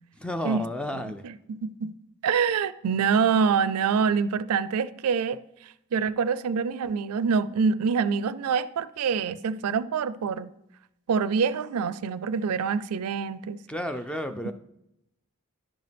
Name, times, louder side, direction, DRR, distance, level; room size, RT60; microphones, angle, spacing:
voice 1, 0.2-1.2 13.7-14.5, left 1 dB, 5° left, 0.4 m, -32 dB
voice 2, 0.9-1.9 2.2-10.5 11.1-13.6, right 6 dB, 85° right, 0.4 m, -26 dB
10.5 x 6.7 x 3.4 m
head